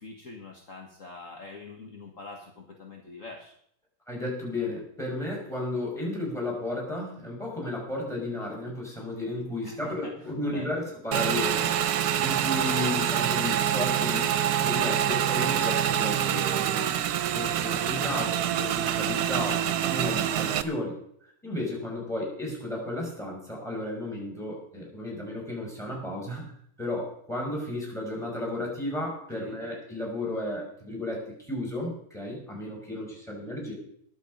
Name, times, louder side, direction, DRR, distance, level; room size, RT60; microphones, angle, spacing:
voice 1, 0.0-3.5 9.6-10.1 10.5-10.7 11.6-11.7 29.3-29.6, left 3 dB, 50° left, 2 dB, 1.8 m, -44 dB
voice 2, 4.1-11.7 12.2-14.3 14.6-17.0 17.3-21.0 21.4-26.5 26.8-33.7, left 1 dB, ahead, 0 dB, 5.3 m, -33 dB
Motorcycle / Engine, 11.1-20.6, right 10 dB, 70° right, 1.3 m, -26 dB
21.0 x 7.5 x 5.3 m, 0.69 s
omnidirectional pair, 1.8 m